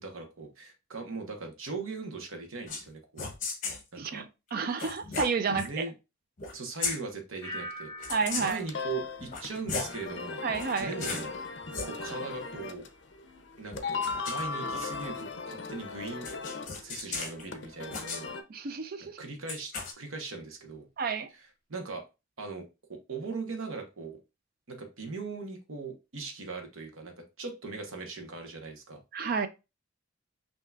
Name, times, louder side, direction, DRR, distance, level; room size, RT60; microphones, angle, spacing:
voice 1, 0.0-3.3 3.9-4.2 5.5-5.9 6.5-10.4 10.8-11.3 11.8-12.8 13.6-16.5 16.8-18.3 19.2-20.9 21.3-22.0 22.4-24.2 24.7-29.0, right 4 dB, 80° right, 1.0 m, -40 dB
sound 1, 2.7-2.9 3.2-3.8 4.8-5.7 6.4-6.5 6.8-7.0 8.0-8.7 9.2-10.0 10.5-11.3 11.6-11.9 13.7-15.2 16.2-17.4 17.9-18.2 19.5-19.9, left 4 dB, 40° left, 0.9 m, -36 dB
voice 2, 4.0-5.8 8.1-8.6 10.4-10.9 18.5-19.2 21.0-21.3 29.1-29.5, right 5 dB, 45° right, 0.4 m, -30 dB
sound 2, 7.4-10.3 10.6-11.1, equal, 20° left, 1.6 m, -45 dB
sound 3, 8.0-18.4, left 4 dB, 55° left, 0.5 m, -38 dB
5.6 x 2.8 x 2.3 m
head